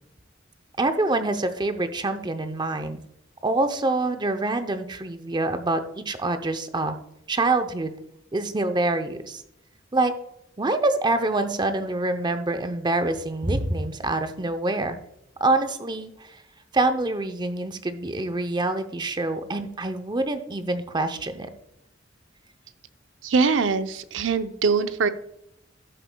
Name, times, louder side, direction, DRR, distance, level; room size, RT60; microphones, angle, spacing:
voice 1, 0.8-3.0 3.4-7.0 7.3-7.9 8.3-9.4 9.9-10.1 10.6-15.0 15.4-16.4 16.7-21.5, right 2 dB, 25° right, 8 dB, 0.6 m, -25 dB
voice 2, 23.2-25.1, right 4 dB, 75° right, 11 dB, 0.6 m, -22 dB
12.0 x 7.4 x 2.2 m, 0.81 s
head